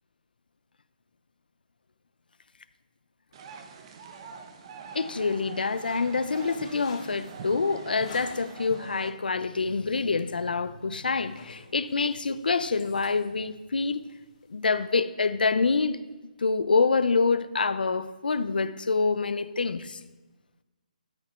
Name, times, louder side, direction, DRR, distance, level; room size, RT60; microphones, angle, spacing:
sound 1, 3.3-9.1, right 5 dB, 35° right, 0.9 m, -44 dB
voice 1, 4.9-14.0 14.5-16.0 16.4-20.0, left 4 dB, 90° left, 0.6 m, -26 dB
sound 2, 5.7-8.7 9.1-9.5 9.8-10.0 10.4-10.8 11.0-14.9, left 4 dB, 50° left, 2.8 m, -50 dB
13.0 x 5.0 x 4.5 m
hypercardioid pair, 160°, 5 cm